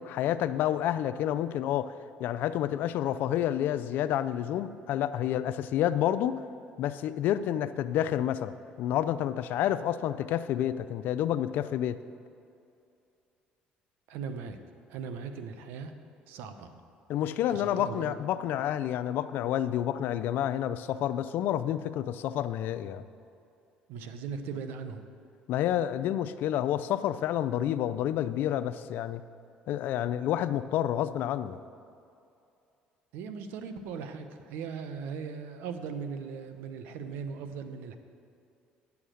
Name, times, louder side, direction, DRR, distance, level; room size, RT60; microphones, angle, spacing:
voice 1, 0.0-1.9 2.2-6.4 6.8-12.0 17.1-23.0 25.5-29.2 29.7-31.6, left 11 dB, 70° left, 13 dB, 0.4 m, -29 dB
voice 2, 14.1-14.6 14.9-15.9 16.3-16.7 17.5-18.1 23.9-25.1 33.1-38.0, right 6 dB, 80° right, 8 dB, 0.8 m, -39 dB
9.9 x 7.1 x 6.4 m, 2.5 s
supercardioid pair, 90°, 3 cm